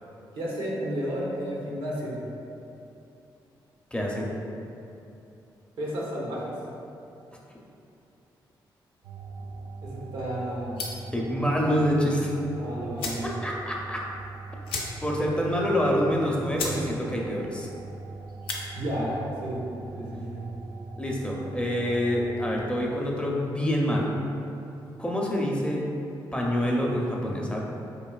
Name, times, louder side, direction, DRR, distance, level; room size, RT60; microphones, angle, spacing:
voice 1, 0.3-2.2 5.8-6.6 9.8-10.8 12.6-13.3 18.7-19.6 19.9-20.5, equal, 85° right, -5 dB, 0.8 m, -32 dB
voice 2, 3.9-4.3 11.1-12.3 13.2-14.1 15.0-17.7 21.0-24.1 25.0-25.8 26.3-27.6, equal, 10° left, -2 dB, 0.6 m, -26 dB
sound 1, 9.0-22.8, right 3 dB, 60° right, 0.3 m, -41 dB
sound 2, 10.7-11.1 12.5-12.6 12.9-13.3 13.7-13.8 14.0-14.2 14.6-15.2 15.6-15.7 16.2-16.3 16.5-16.8 17.2-17.5 18.3-18.6, left 3 dB, 90° left, 0.5 m, -34 dB
4.5 x 2.7 x 2.3 m, 2.8 s
cardioid pair, 60°, 9 cm